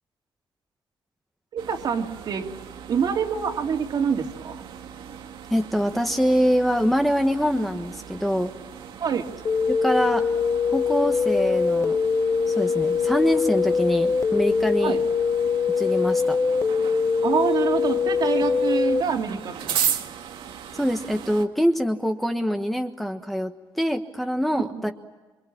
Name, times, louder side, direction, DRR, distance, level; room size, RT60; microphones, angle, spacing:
voice 1, 1.5-2.5 2.9-4.6 9.0-9.3 14.8-15.0 17.2-19.9 24.5-24.9, right 6 dB, 55° right, 2 dB, 2.9 m, -26 dB
sound 1, 1.6-21.5, right 8 dB, 85° right, 2.0 m, -37 dB
voice 2, 5.5-8.5 9.7-10.3 10.6-12.0 12.5-15.0 15.8-16.4 20.7-24.9, equal, ahead, 4 dB, 1.4 m, -24 dB
sound 2, 9.5-19.0, left 5 dB, 35° left, 0.8 m, -23 dB
27.0 x 24.5 x 8.7 m, 1.2 s
cardioid pair, 135°, 8 cm